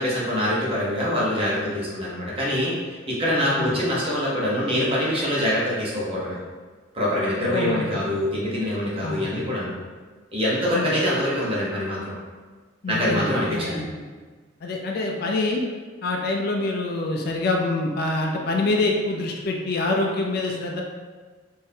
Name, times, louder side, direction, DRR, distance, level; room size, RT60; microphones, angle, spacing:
voice 1, 0.0-6.4 6.9-9.7 10.3-12.1 12.9-13.8, left 1 dB, 30° right, -7 dB, 0.9 m, -24 dB
voice 2, 7.5-8.0 9.0-9.3 10.7-11.0 12.8-14.0 14.6-15.6 16.0-20.8, left 2 dB, 50° left, 1 dB, 0.4 m, -26 dB
3.6 x 2.7 x 2.7 m, 1.4 s
head